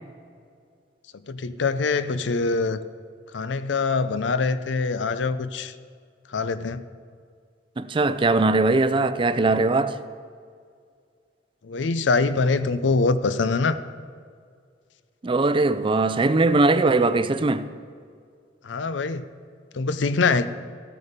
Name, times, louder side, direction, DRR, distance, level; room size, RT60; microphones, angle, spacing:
voice 1, 1.3-2.9 3.3-5.7 6.3-6.8 11.6-13.8 18.6-19.3 19.7-20.5, left 4 dB, 85° left, 0.5 m, -24 dB
voice 2, 7.8-10.0 15.2-17.7, right 3 dB, 30° right, 0.4 m, -20 dB
14.5 x 8.4 x 5.1 m
head